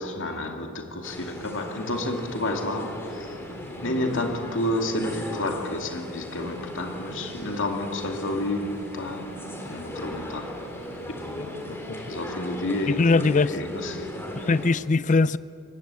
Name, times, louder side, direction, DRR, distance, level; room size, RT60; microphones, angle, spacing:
voice 1, 0.0-3.4 3.8-10.6 11.2-11.5 12.1-13.2 13.5-14.4, left 1 dB, 55° left, 2.6 m, -30 dB
sound 1, 1.0-14.7, left 1 dB, 10° left, 3.2 m, -37 dB
voice 2, 12.9-13.6 14.4-15.4, left 3 dB, 35° left, 0.5 m, -21 dB
23.0 x 19.5 x 8.4 m
head